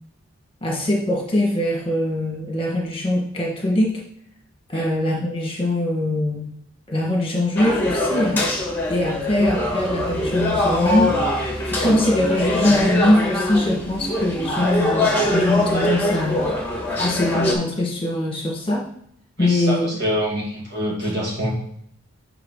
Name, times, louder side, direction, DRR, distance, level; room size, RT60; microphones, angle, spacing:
voice 1, 0.6-4.0 4.7-6.5 6.9-8.4 8.9-11.2 11.6-16.4 17.0-18.9 19.4-19.9, left 1 dB, 25° left, -2 dB, 1.5 m, -22 dB
sound 1, 7.6-17.5, left 1 dB, 10° left, 1.5 m, -23 dB
voice 2, 19.4-21.5, equal, 50° right, -3 dB, 2.3 m, -25 dB
10.5 x 3.8 x 3.8 m, 0.68 s
head